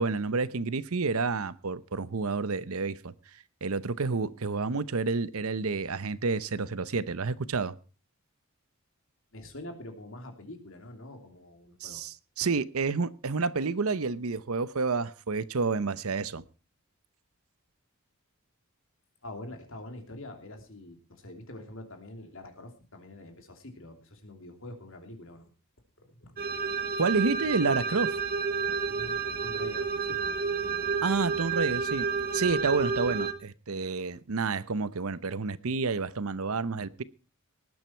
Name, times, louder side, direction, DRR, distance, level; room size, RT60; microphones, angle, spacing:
voice 1, 0.0-3.1 3.6-7.7 11.8-16.4 27.0-28.2 31.0-32.1 32.3-37.0, right 4 dB, 75° right, 0.8 m, -29 dB
voice 2, 9.3-12.0 19.2-25.5 26.0-26.4 28.9-31.0, left 1 dB, 60° left, 3.0 m, -45 dB
sound 1, 26.4-33.3, right 5 dB, 45° right, 1.4 m, -30 dB
19.5 x 9.2 x 4.5 m
head